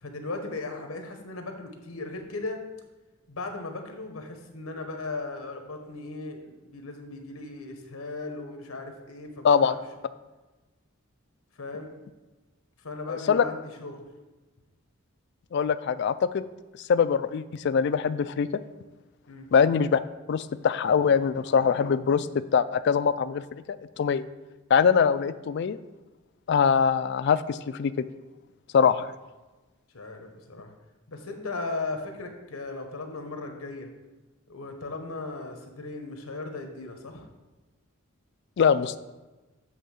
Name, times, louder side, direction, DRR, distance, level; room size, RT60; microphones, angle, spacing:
voice 1, 0.0-2.6 3.3-9.8 11.6-11.9 12.8-14.0 19.3-19.5 29.9-30.7 31.1-33.9 34.5-37.3, left 3 dB, 90° left, 5 dB, 1.1 m, -37 dB
voice 2, 13.1-13.4 15.5-16.4 16.9-18.5 19.5-20.0 20.3-23.4 23.7-24.2 24.7-25.8 26.5-28.1 28.7-29.1 38.6-39.0, left 6 dB, 55° left, 15 dB, 0.3 m, -23 dB
7.9 x 3.7 x 6.3 m, 1.2 s
head